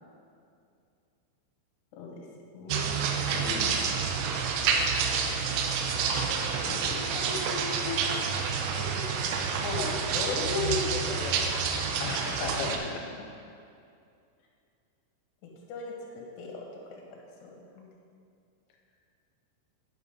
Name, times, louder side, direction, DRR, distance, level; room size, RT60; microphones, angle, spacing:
voice 1, 2.5-3.2 6.6-8.0 8.3-8.5 8.9-9.0 9.6-11.6 15.4-17.9, left 4 dB, 65° left, -1 dB, 3.4 m, -37 dB
sound 1, 2.7-12.8, right 6 dB, 90° right, 3.4 m, -29 dB
voice 2, 3.3-3.9 12.0-13.0, left 5 dB, 85° left, 1 dB, 3.3 m, -36 dB
9.6 x 9.0 x 5.2 m, 2.4 s
omnidirectional pair, 5.9 m